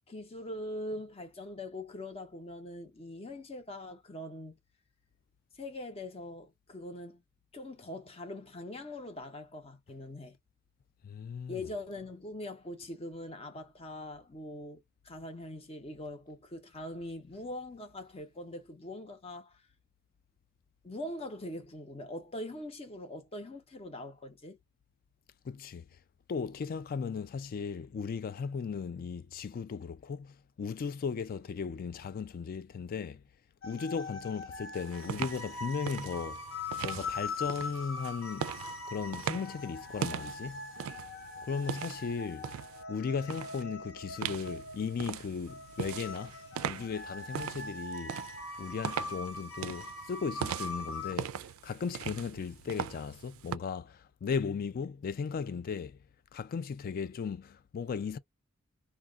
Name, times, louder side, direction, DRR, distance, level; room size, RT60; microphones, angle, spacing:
voice 1, 0.0-4.6 5.5-7.2 7.5-10.4 11.5-19.6 20.8-24.6, left 1 dB, 30° left, 0.7 m, -42 dB
voice 2, 11.0-11.6 25.4-25.9 26.3-33.2 33.6-36.4 36.8-38.5 38.9-40.7 41.4-42.5 42.9-48.2 48.6-56.0 56.3-58.2, left 6 dB, 45° left, 0.3 m, -36 dB
sound 1, 33.6-51.1, left 3 dB, 85° left, 0.7 m, -42 dB
sound 2, 34.7-42.8 43.3-43.6 44.2-53.6, right 9 dB, 85° right, 0.3 m, -41 dB
2.3 x 2.2 x 3.4 m
head